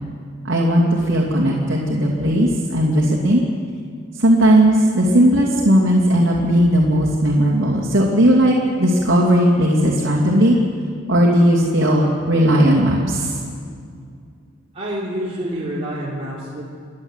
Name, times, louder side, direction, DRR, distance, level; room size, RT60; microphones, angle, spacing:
voice 1, 0.4-3.4 4.1-10.6 11.1-13.4, equal, 75° right, -3 dB, 2.8 m, -16 dB
voice 2, 14.7-16.6, right 1 dB, 30° right, -6 dB, 3.3 m, -27 dB
30.0 x 11.0 x 8.2 m, 2.2 s
head